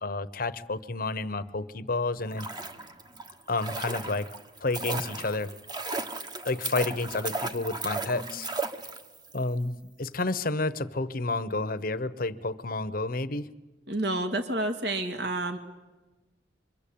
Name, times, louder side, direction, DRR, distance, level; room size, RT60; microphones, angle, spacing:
voice 1, 0.0-2.5 3.5-4.3 4.6-6.0 6.4-8.5 9.3-13.5, left 3 dB, 50° left, 13 dB, 1.0 m, -30 dB
sound 1, 2.2-9.3 9.6-9.7, right 3 dB, 25° right, 1.4 m, -35 dB
voice 2, 13.9-15.6, right 2 dB, 65° right, 7 dB, 2.3 m, -29 dB
27.0 x 23.5 x 8.6 m, 1.2 s
head